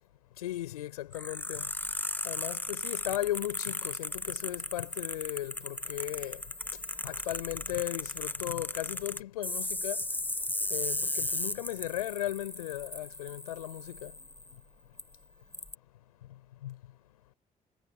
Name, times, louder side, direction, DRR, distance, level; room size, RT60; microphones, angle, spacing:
voice 1, 0.4-1.7 2.2-6.4 7.0-10.0 10.7-14.1 16.6-16.8, left 14 dB, 85° left, 5.8 m, -36 dB
sound 1, 1.1-14.5 15.0-15.1 15.5-15.7, left 1 dB, 10° left, 1.8 m, -36 dB
figure-of-eight pair, 45°, 19 cm